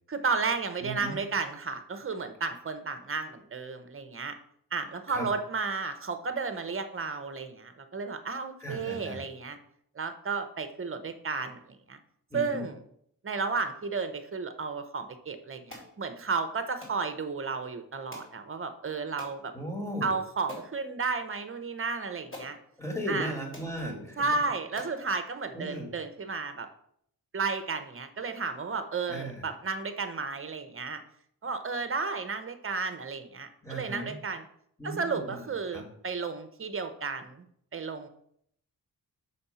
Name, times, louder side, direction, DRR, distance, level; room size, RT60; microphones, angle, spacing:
voice 1, 0.1-4.4 4.7-9.6 10.0-12.0 12.3-12.8 13.2-19.5 20.0-22.6 23.1-23.3 24.2-26.7 27.3-31.0 31.4-34.5 34.8-37.5 37.7-38.1, right 4 dB, 35° right, 9 dB, 0.8 m, -33 dB
voice 2, 0.8-1.2 5.1-5.3 8.6-9.2 12.3-12.7 19.5-20.1 22.8-24.3 25.5-25.9 29.1-29.4 33.6-34.2 34.8-35.9, equal, 10° left, 1 dB, 1.8 m, -36 dB
sound 1, 15.7-15.9 16.8-17.0 18.1-18.4 19.2-19.4 20.0-20.1 20.5-20.7 21.8-21.9 22.3-22.6 23.2-23.3 23.5-23.7 24.3-24.4 24.8-25.0, left 1 dB, 35° left, 2.7 m, -45 dB
6.5 x 4.3 x 5.5 m, 0.69 s
wide cardioid pair, 105°, 37 cm